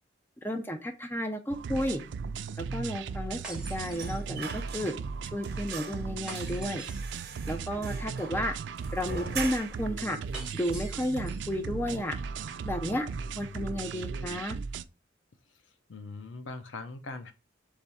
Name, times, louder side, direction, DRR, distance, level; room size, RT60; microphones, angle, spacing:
voice 1, 0.4-2.0 2.6-4.9 5.3-6.8 7.5-8.5 8.9-10.2 10.5-12.2 12.6-13.1 13.4-14.6, equal, 10° left, 0.5 m, -32 dB
sound 1, 1.5-14.8, right 5 dB, 70° right, 0.3 m, -37 dB
sound 2, 3.4-4.7 6.3-7.3 10.3-11.5, right 3 dB, 5° right, 1.2 m, -45 dB
sound 3, 3.9-5.2 5.4-10.0 10.3-10.4 10.7-11.5 11.9-12.1 12.4-13.1 13.4-13.5, right 5 dB, 50° right, 0.9 m, -42 dB
voice 2, 15.9-17.3, left 3 dB, 80° left, 0.6 m, -41 dB
3.6 x 3.4 x 4.1 m
head